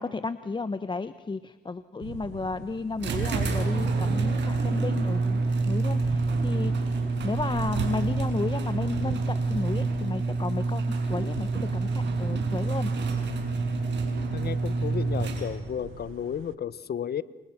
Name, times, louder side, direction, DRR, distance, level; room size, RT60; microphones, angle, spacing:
voice 1, 0.0-5.4 5.7-6.9 7.2-12.9, left 4 dB, 25° left, 12 dB, 1.0 m, -33 dB
sound 1, 2.0-16.6, right 13 dB, 85° right, 1.1 m, -41 dB
sound 2, 3.0-15.8, right 3 dB, 65° right, 6.3 m, -27 dB
voice 2, 14.3-17.2, left 8 dB, 55° left, 17 dB, 1.2 m, -33 dB
29.0 x 27.5 x 6.0 m, 1.2 s
cardioid pair, 90°, 20 cm